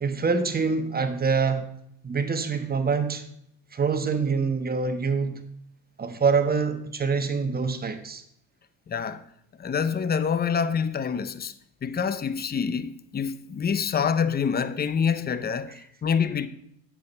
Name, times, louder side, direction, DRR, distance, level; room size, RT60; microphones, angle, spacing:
voice 1, 0.0-1.7 2.0-3.2 3.7-5.4 6.0-8.2, right 5 dB, 25° right, 1.2 m, -25 dB
voice 2, 8.9-9.2 9.6-11.5 11.8-16.5, left 6 dB, 25° left, 0.6 m, -26 dB
8.4 x 6.3 x 5.2 m
supercardioid pair, 80°, 37 cm